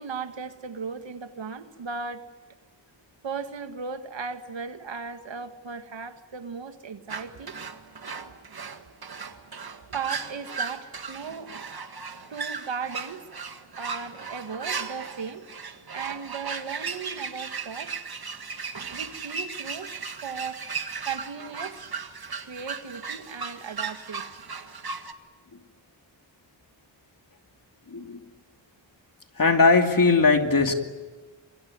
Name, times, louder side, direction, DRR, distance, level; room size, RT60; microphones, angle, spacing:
voice 1, 0.0-2.2 3.2-7.6 9.9-11.5 12.3-13.3 13.8-15.4 15.9-18.0 18.9-19.9 20.2-20.7 21.1-21.8 22.4-24.3, right 5 dB, 75° right, 8 dB, 1.9 m, -36 dB
sound 1, 7.1-25.1, right 5 dB, 55° right, 1.8 m, -36 dB
voice 2, 27.9-28.2 29.4-30.7, left 4 dB, 45° left, 5 dB, 2.7 m, -19 dB
26.0 x 24.0 x 9.6 m, 1.4 s
wide cardioid pair, 100°, 45 cm